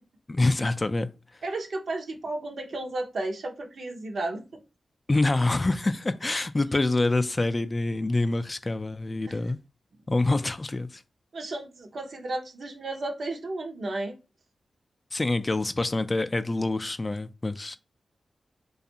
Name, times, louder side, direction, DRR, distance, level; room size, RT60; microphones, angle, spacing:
voice 1, 0.3-1.1 5.1-9.6 10.1-11.0 15.1-17.8, left 2 dB, 35° left, 0.3 m, -26 dB
voice 2, 1.4-4.6 9.3-9.4 11.3-14.2, right 2 dB, 70° right, 0.6 m, -33 dB
2.5 x 2.3 x 2.7 m
cardioid pair, 45°, 0 cm